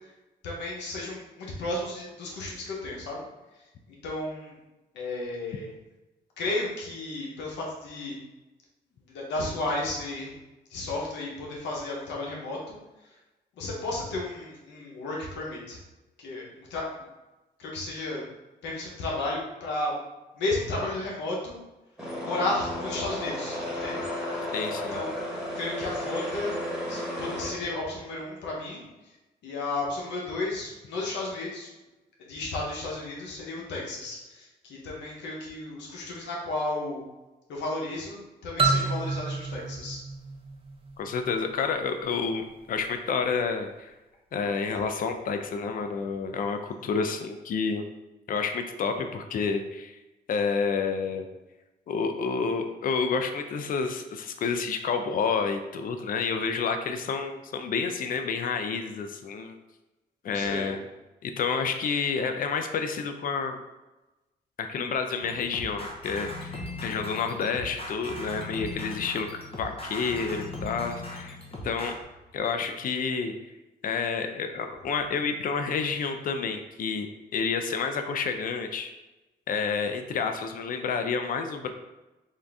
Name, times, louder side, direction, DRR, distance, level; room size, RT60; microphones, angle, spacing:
voice 1, 0.4-3.2 4.0-4.6 4.9-5.7 6.4-8.2 9.1-10.3 10.7-12.8 13.0-13.1 13.6-15.8 16.2-17.1 17.6-18.2 18.6-20.0 20.3-21.6 22.2-24.0 24.9-25.2 25.5-26.5 26.9-29.2 29.4-31.7 32.2-37.0 37.5-40.0 60.3-60.7, left 2 dB, 90° left, -3 dB, 1.0 m, -33 dB
sound 1, 22.0-27.5, left 1 dB, 5° right, 1.4 m, -33 dB
voice 2, 24.5-25.0 41.0-43.9 44.3-47.8 48.3-50.0 50.3-51.3 51.9-59.6 60.2-60.8 61.2-63.6 64.6-71.4 71.6-72.0 72.3-73.3 73.8-77.1 77.3-78.9 79.5-81.7, left 5 dB, 50° left, 6 dB, 0.4 m, -29 dB
sound 2, 38.6-41.3, right 4 dB, 30° right, 0.6 m, -29 dB
sound 3, 65.2-72.0, left 2 dB, 35° left, 0.9 m, -39 dB
3.6 x 2.6 x 3.4 m, 1.0 s
cardioid pair, 80°, 18 cm